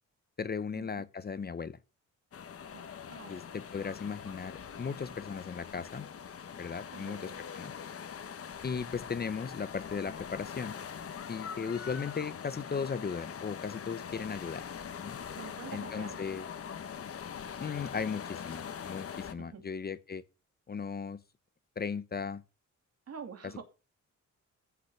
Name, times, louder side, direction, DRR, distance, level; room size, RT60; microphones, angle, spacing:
voice 1, 0.4-1.8 3.3-6.1 6.6-7.7 8.6-10.7 11.3-14.6 15.0-15.2 15.7-16.4 17.6-20.2 20.7-21.2 21.8-22.4, left 6 dB, 30° left, 0.8 m, -37 dB
sound 1, 2.3-19.3, left 7 dB, 50° left, 1.3 m, -43 dB
voice 2, 3.1-3.5 6.9-7.4 15.3-16.2 19.4-19.7 23.1-23.6, right 6 dB, 55° right, 2.7 m, -46 dB
14.5 x 5.9 x 5.8 m
cardioid pair, 110°, 30 cm